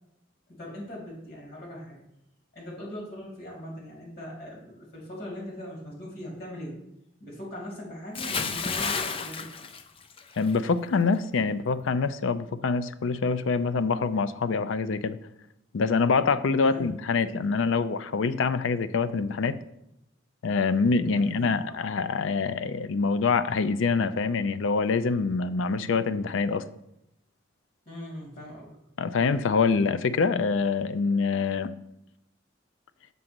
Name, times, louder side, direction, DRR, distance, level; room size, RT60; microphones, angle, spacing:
voice 1, 0.5-2.0 2.5-6.7 7.2-9.5 16.6-16.9 21.1-21.5 27.9-28.8, equal, 55° left, -2 dB, 2.8 m, -40 dB
Bathtub (filling or washing) / Splash splatter, 8.1-10.6 10.9-11.2, left 5 dB, 30° left, 0.4 m, -31 dB
voice 2, 10.4-15.2 15.7-19.6 20.4-26.6 29.0-31.7, left 4 dB, 85° left, 14 dB, 0.4 m, -25 dB
6.8 x 3.8 x 6.1 m, 0.82 s
head